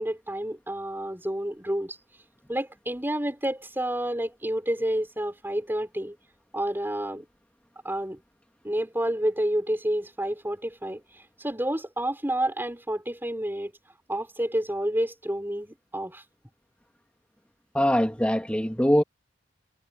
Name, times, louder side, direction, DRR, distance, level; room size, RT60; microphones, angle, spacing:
voice 1, 0.0-2.0 2.5-6.2 6.5-7.2 7.8-8.2 8.6-11.0 11.4-13.7 14.1-16.2, right 1 dB, 10° right, 5.5 m, -29 dB
voice 2, 17.7-19.0, equal, 5° left, 2.6 m, -22 dB
head